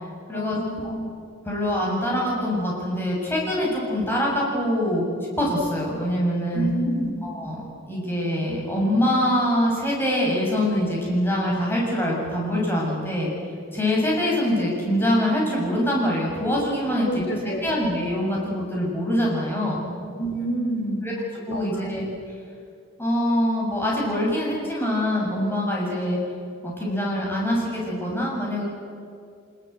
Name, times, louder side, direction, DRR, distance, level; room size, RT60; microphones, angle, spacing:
voice 1, 0.3-1.0 6.5-7.1 16.9-17.8 20.1-21.0 21.5-21.9, right 1 dB, 65° left, 1 dB, 4.0 m, -28 dB
voice 2, 1.4-5.0 5.4-6.7 7.2-7.6 7.9-13.3 13.7-17.2 17.6-19.8 21.0-21.1 21.5-22.0 23.0-26.2 26.6-28.6, left 1 dB, 10° left, -4 dB, 7.3 m, -24 dB
24.5 x 22.0 x 8.2 m, 2.3 s
head